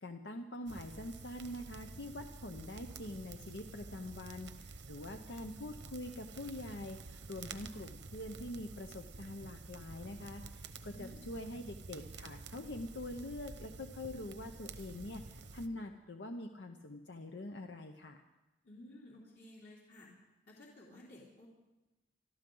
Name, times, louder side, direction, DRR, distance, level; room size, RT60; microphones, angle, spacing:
voice 1, 0.0-18.2, left 1 dB, 85° left, 5 dB, 0.8 m, -45 dB
sound 1, 0.7-15.7, right 3 dB, 80° right, 1.0 m, -50 dB
voice 2, 10.9-11.2 18.6-20.1 20.5-21.5, left 1 dB, 60° left, -6 dB, 3.2 m, -54 dB
25.5 x 13.0 x 3.9 m, 1.0 s
head